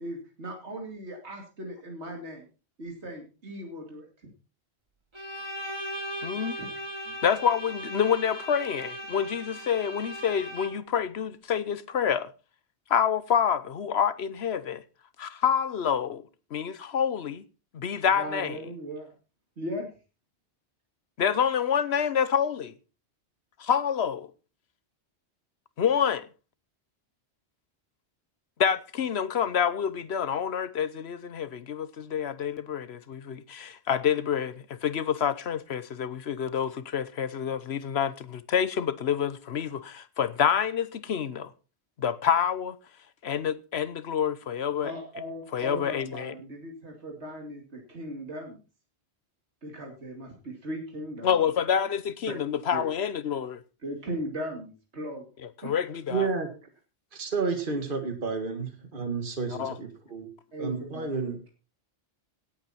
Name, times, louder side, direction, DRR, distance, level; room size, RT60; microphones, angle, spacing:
voice 1, 0.0-2.4 2.8-4.1 6.5-6.7 18.0-19.1 19.6-19.9 44.8-48.6 49.6-51.4 52.3-52.4 52.7-52.9 53.8-55.3 55.6-55.8 60.5-61.4, equal, 80° right, 2.8 m, -38 dB
Bowed string instrument, 5.1-11.0, equal, 25° right, 2.0 m, -38 dB
voice 2, 6.2-6.6 7.2-12.3 12.9-14.8 15.2-16.2 16.5-17.4 17.7-18.6 21.2-22.7 23.6-24.3 25.8-26.3 28.6-41.5 42.0-42.8 43.2-44.9 45.5-46.3 51.2-53.6 55.6-56.3 59.5-59.7, left 8 dB, 70° left, 1.1 m, -27 dB
voice 3, 56.1-56.5 57.1-60.3 60.6-61.4, right 4 dB, 50° right, 2.0 m, -31 dB
17.5 x 8.7 x 4.3 m
omnidirectional pair, 1.1 m